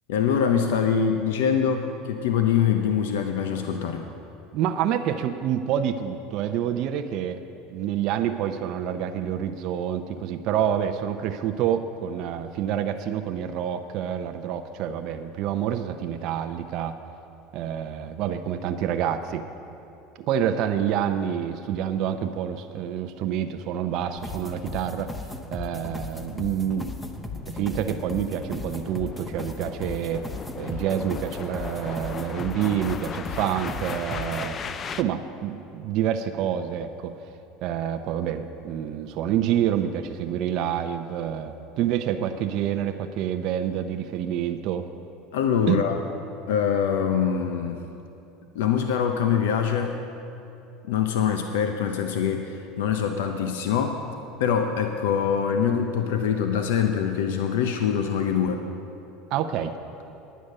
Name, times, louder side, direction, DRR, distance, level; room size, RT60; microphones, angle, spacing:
voice 1, 0.1-4.1 45.3-46.0 46.5-47.8 48.5-49.9 50.9-54.0 54.4-58.7, left 7 dB, 85° left, 5 dB, 0.7 m, -24 dB
voice 2, 4.5-7.4 7.7-17.0 17.5-19.5 20.3-25.1 25.5-27.0 27.5-30.2 30.6-34.6 34.9-37.2 37.6-44.8 45.7-45.8 59.3-59.8, right 9 dB, 55° right, 7 dB, 0.6 m, -27 dB
sound 1, 24.2-34.5, left 3 dB, 10° left, 0.8 m, -37 dB
sound 2, 25.5-35.0, left 6 dB, 35° left, 0.4 m, -38 dB
10.0 x 9.4 x 6.5 m, 2.8 s
supercardioid pair, 110°, 0 cm